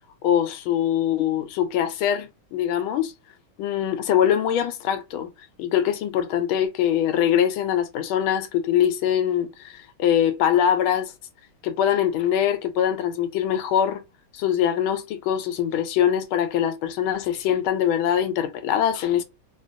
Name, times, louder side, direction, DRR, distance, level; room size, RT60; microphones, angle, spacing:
voice 1, 0.2-3.1 3.6-5.3 5.6-11.1 11.6-14.0 14.3-19.2, left 10 dB, 90° left, 1.5 m, -23 dB
4.3 x 2.2 x 2.5 m
omnidirectional pair, 2.3 m